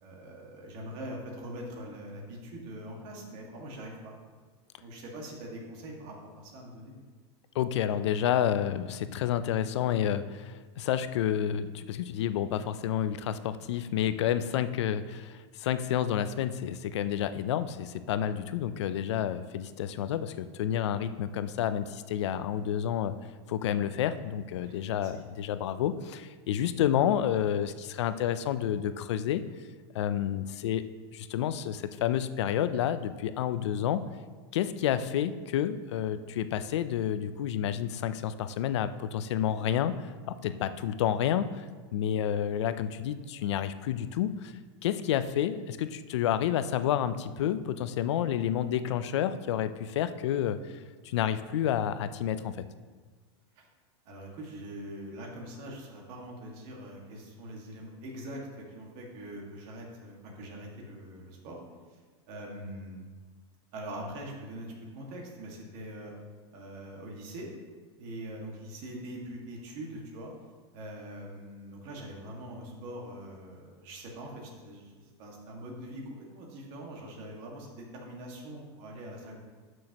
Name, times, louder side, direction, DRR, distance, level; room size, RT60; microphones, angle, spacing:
voice 1, 0.0-4.2 4.8-7.0 24.6-25.2 53.6-53.7 54.1-61.6 61.9-62.0 62.3-63.0 63.7-66.1 66.5-67.5 68.0-70.3 70.7-79.3, right 1 dB, 40° right, -1 dB, 1.9 m, -43 dB
voice 2, 7.5-23.1 23.5-29.4 29.9-30.8 31.1-34.0 34.5-41.7 41.9-44.5 44.8-50.6 51.0-52.7, left 10 dB, 80° left, 12 dB, 0.5 m, -30 dB
12.5 x 6.3 x 3.0 m, 1.4 s
supercardioid pair, 165°, 15 cm